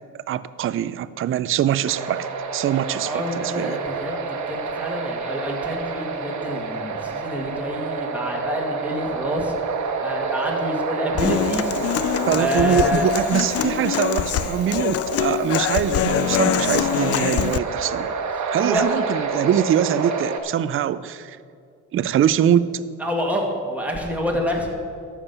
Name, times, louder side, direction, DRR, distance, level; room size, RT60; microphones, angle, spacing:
voice 1, 0.3-2.3 2.5-3.8 12.3-18.2 18.5-21.4 21.9-22.8, right 10 dB, 45° right, 15 dB, 0.4 m, -23 dB
sound 1, 1.9-20.4, right 4 dB, 70° right, 1.2 m, -29 dB
voice 2, 2.9-9.5 10.0-11.8 12.2-13.1 18.5-18.8 23.0-24.8, left 1 dB, 5° right, -1 dB, 2.2 m, -27 dB
Human voice / Acoustic guitar, 11.2-17.6, left 12 dB, 55° left, 0.4 m, -24 dB
12.0 x 7.4 x 5.5 m, 2.3 s
cardioid pair, 90°, 30 cm